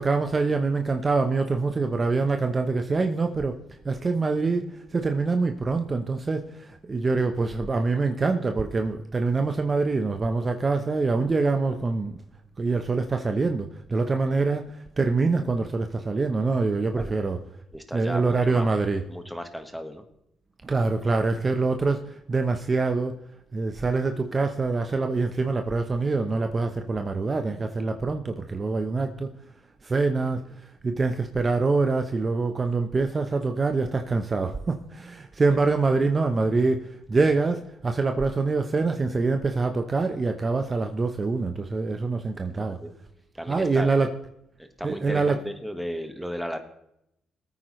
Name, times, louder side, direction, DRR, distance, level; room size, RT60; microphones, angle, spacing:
voice 1, 0.0-3.6 3.8-12.2 12.6-17.4 17.9-19.0 20.6-23.2 23.5-29.3 29.8-30.4 30.8-42.8 43.5-44.2 44.8-45.4, right 3 dB, 30° right, 5 dB, 0.8 m, -25 dB
voice 2, 17.7-18.7 19.1-20.0 30.4-30.5 42.6-42.9 43.3-43.9 44.6-46.6, equal, ahead, 6 dB, 1.5 m, -35 dB
20.0 x 8.9 x 3.2 m, 0.80 s
cardioid pair, 90°, 0 cm